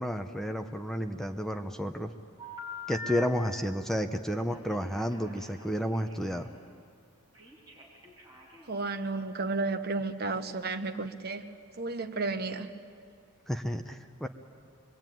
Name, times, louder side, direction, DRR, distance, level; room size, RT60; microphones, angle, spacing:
voice 1, 0.0-2.1 2.9-6.5 13.5-14.3, equal, ahead, 6 dB, 0.8 m, -31 dB
Telephone, 2.4-3.3 4.4-6.5 7.3-8.8, left 3 dB, 20° right, 5.5 m, -44 dB
voice 2, 8.7-12.7, right 3 dB, 45° right, 8 dB, 1.2 m, -33 dB
25.0 x 23.0 x 9.2 m, 2.4 s
head